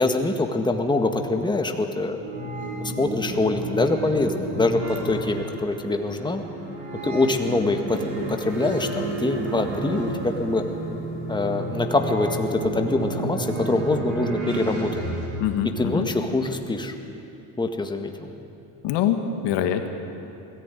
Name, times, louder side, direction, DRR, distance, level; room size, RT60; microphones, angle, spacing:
voice 1, 0.0-2.2 2.8-6.4 7.0-10.6 11.3-14.9 15.8-16.9 17.6-18.3, left 2 dB, 10° left, 5 dB, 1.7 m, -24 dB
sound 1, 2.2-15.3, right 2 dB, 90° right, 4.4 m, -31 dB
voice 2, 15.4-16.1 18.8-19.9, left 9 dB, 70° left, 7 dB, 1.8 m, -24 dB
20.5 x 14.5 x 9.3 m, 2.8 s
supercardioid pair, 95°, 44 cm